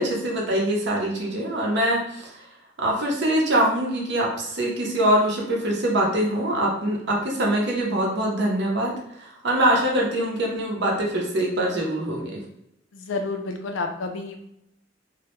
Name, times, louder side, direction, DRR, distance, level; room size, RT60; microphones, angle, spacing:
voice 1, 0.0-2.3 2.8-12.4, right 1 dB, 65° right, -2 dB, 0.7 m, -23 dB
voice 2, 12.9-14.4, left 3 dB, 80° left, 5 dB, 0.4 m, -30 dB
2.2 x 2.1 x 2.9 m, 0.77 s
head